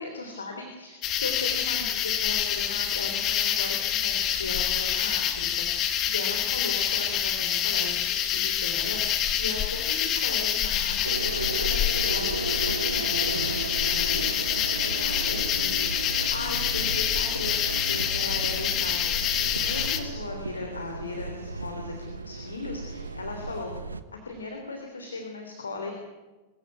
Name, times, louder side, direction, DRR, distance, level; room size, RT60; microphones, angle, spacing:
voice 1, 0.0-23.7 24.2-25.9, left 3 dB, 75° left, 3 dB, 3.1 m, -38 dB
sound 1, 1.0-20.0, left 10 dB, 35° left, 2.1 m, -27 dB
sound 2, 11.0-24.0, right 3 dB, 80° right, 1.1 m, -35 dB
23.0 x 15.0 x 9.3 m, 1.2 s
figure-of-eight pair, 90°, 0 cm